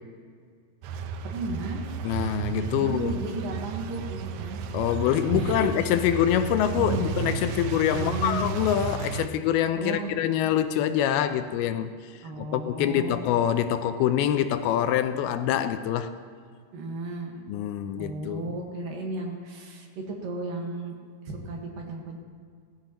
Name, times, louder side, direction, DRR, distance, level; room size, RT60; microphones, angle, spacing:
sound 1, 0.8-9.3, right 6 dB, 80° right, 2.2 m, -33 dB
voice 1, 1.2-1.9 2.8-4.6 5.3-5.7 6.8-7.1 7.9-8.4 9.8-10.2 12.2-13.2 16.7-17.4 18.0-20.9 21.2-22.2, right 2 dB, 65° right, 1 dB, 3.0 m, -34 dB
voice 2, 2.0-3.1 4.7-12.1 12.4-16.1 17.5-18.5, left 10 dB, 85° left, 10 dB, 2.5 m, -25 dB
17.0 x 15.0 x 3.0 m, 2.1 s
omnidirectional pair, 4.5 m